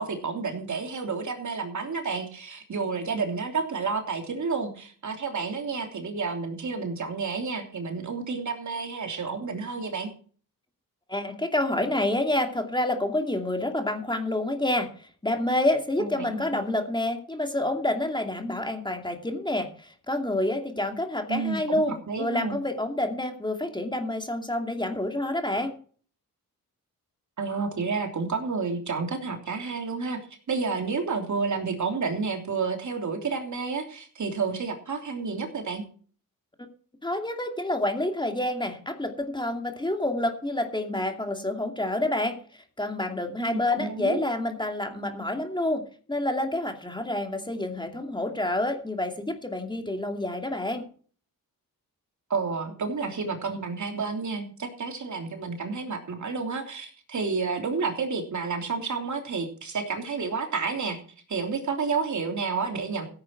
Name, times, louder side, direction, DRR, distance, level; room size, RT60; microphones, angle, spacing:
voice 1, 0.0-10.1 16.0-16.6 21.3-21.8 22.1-22.6 27.4-30.2 30.5-35.8 43.4-44.2 52.3-61.0 61.3-63.0, right 4 dB, 55° right, 4 dB, 3.1 m, -30 dB
voice 2, 11.1-25.7 37.0-42.3 42.8-45.8 46.1-50.8, left 1 dB, 15° left, 4 dB, 2.5 m, -28 dB
16.0 x 8.8 x 4.6 m, 0.43 s
wide cardioid pair, 110°, 35 cm